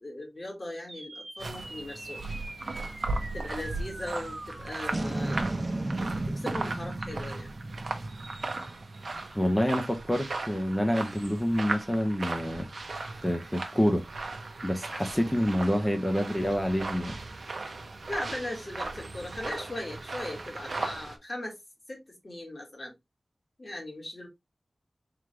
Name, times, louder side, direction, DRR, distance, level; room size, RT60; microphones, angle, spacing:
voice 1, 0.0-2.2 3.3-5.5 6.0-7.5 18.1-21.6 21.9-22.9 23.6-24.3, left 1 dB, 40° left, 1.9 m, -38 dB
sound 1, 0.9-9.5, right 2 dB, 35° right, 1.0 m, -37 dB
sound 2, 1.4-21.2, right 3 dB, 75° right, 0.8 m, -37 dB
voice 2, 9.3-12.7 13.2-14.0 14.6-17.2, equal, 10° left, 0.8 m, -27 dB
3.8 x 3.2 x 3.2 m
wide cardioid pair, 80°, 0 cm